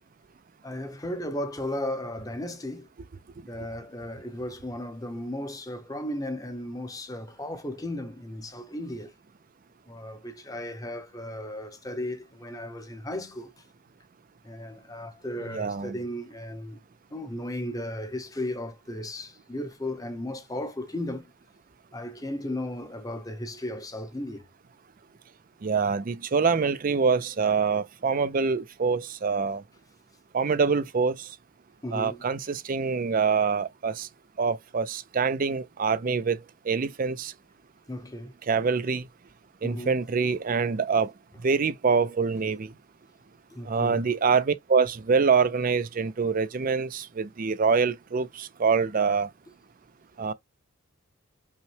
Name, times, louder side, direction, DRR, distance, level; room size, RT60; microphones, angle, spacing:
voice 1, 0.6-2.9 3.5-9.1 9.9-13.5 14.4-16.8 17.1-21.3 21.9-24.4 31.8-32.2 37.9-38.3 39.6-39.9 43.5-44.1, left 1 dB, 15° left, 0.7 m, -35 dB
voice 2, 15.5-16.0 25.6-29.6 30.3-31.3 31.9-34.1 34.4-36.4 36.7-37.3 38.5-39.0 39.6-41.1 41.4-42.7 43.7-49.3 50.2-50.3, right 5 dB, 40° right, 0.4 m, -25 dB
5.4 x 2.2 x 3.2 m
head